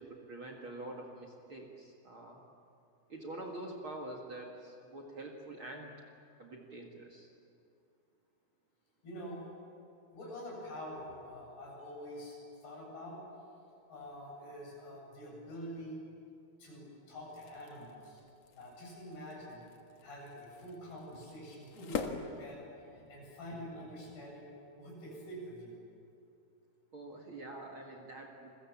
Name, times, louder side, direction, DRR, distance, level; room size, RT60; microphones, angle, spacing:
voice 1, 0.0-2.4 3.1-5.9 6.4-7.3 26.9-28.5, right 1 dB, 40° right, 2 dB, 2.2 m, -46 dB
voice 2, 9.0-9.4 10.1-12.4 12.6-13.2 13.9-16.0 16.6-18.2 18.5-19.6 20.0-22.6 22.9-24.5 24.8-25.8, equal, 80° left, -2 dB, 9.9 m, -46 dB
sound 1, 17.2-23.2, left 6 dB, 55° left, 2.2 m, -45 dB
28.5 x 23.0 x 7.4 m, 2.5 s
omnidirectional pair, 4.5 m